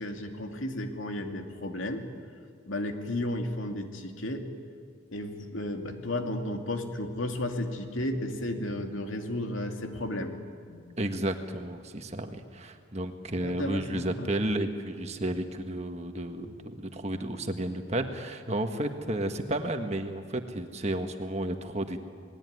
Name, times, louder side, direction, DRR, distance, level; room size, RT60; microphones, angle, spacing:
voice 1, 0.0-2.0 2.7-4.5 5.1-10.3 10.7-10.9 13.4-14.3, left 1 dB, 75° left, 4 dB, 2.5 m, -33 dB
voice 2, 11.0-22.0, right 1 dB, 30° right, 6 dB, 1.5 m, -32 dB
28.0 x 20.0 x 9.6 m, 2.1 s
head